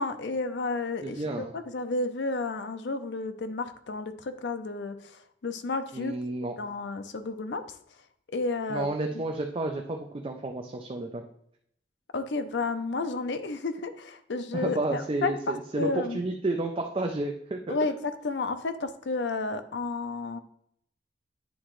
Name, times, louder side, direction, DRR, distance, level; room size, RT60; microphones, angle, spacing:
voice 1, 0.0-6.1 6.6-7.6 8.3-8.9 12.1-16.2 17.7-20.4, left 3 dB, 75° left, 9 dB, 0.6 m, -32 dB
voice 2, 1.0-1.5 5.9-6.5 8.7-11.3 14.5-17.8, right 2 dB, 30° right, 3 dB, 0.4 m, -31 dB
9.4 x 3.7 x 3.1 m, 0.70 s
head